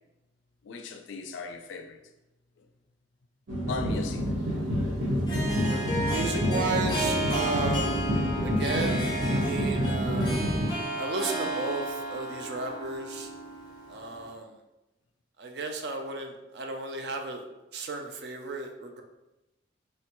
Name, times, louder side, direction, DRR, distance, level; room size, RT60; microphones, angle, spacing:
voice 1, 0.6-2.0 2.6-2.7 3.7-4.3, left 4 dB, 85° left, 0.3 m, -38 dB
sound 1, 3.5-10.7, equal, 85° right, 0.9 m, -28 dB
Harp, 3.9-14.3, right 1 dB, 20° left, 0.5 m, -33 dB
voice 2, 5.7-8.0 8.4-10.6 10.9-13.3 13.9-14.5 15.4-17.4 17.7-19.0, right 3 dB, 60° right, 0.4 m, -34 dB
3.3 x 2.1 x 2.9 m
head